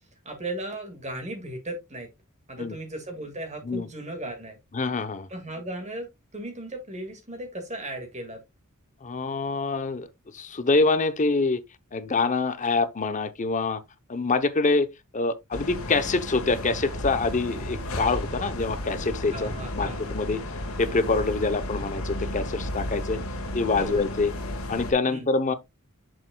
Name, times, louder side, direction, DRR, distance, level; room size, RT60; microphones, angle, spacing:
voice 1, 0.3-2.1 2.5-4.6 5.3-6.1 6.3-8.4 19.3-20.0 23.8-24.0 25.1-25.3, right 1 dB, 35° right, 1.9 m, -36 dB
voice 2, 4.7-5.3 9.0-10.1 10.3-11.6 11.9-13.8 14.1-14.9 15.1-20.4 20.8-23.2 23.5-24.3 24.7-25.5, left 3 dB, 35° left, 0.7 m, -25 dB
sound 1, 15.5-24.9, left 1 dB, 75° left, 1.5 m, -33 dB
7.6 x 6.4 x 2.2 m
head